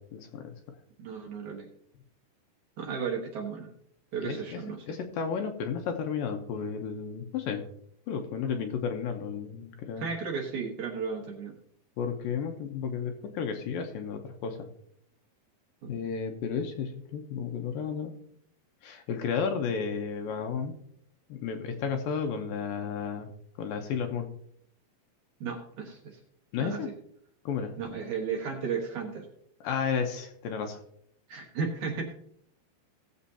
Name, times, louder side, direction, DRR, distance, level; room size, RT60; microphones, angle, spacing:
voice 1, 0.1-0.5 4.2-7.7 8.1-10.1 12.0-14.7 15.9-18.1 18.8-20.8 21.3-23.3 23.6-24.3 26.5-26.9 27.5-27.8 29.6-30.8, left 6 dB, 75° left, 5 dB, 2.4 m, -33 dB
voice 2, 1.0-1.7 2.8-3.7 4.1-4.8 10.0-11.6 15.8-15.9 25.4-26.2 26.6-26.9 27.8-29.3 31.3-32.1, right 5 dB, 60° right, 1 dB, 2.4 m, -34 dB
19.0 x 7.3 x 2.8 m, 0.70 s
omnidirectional pair, 4.5 m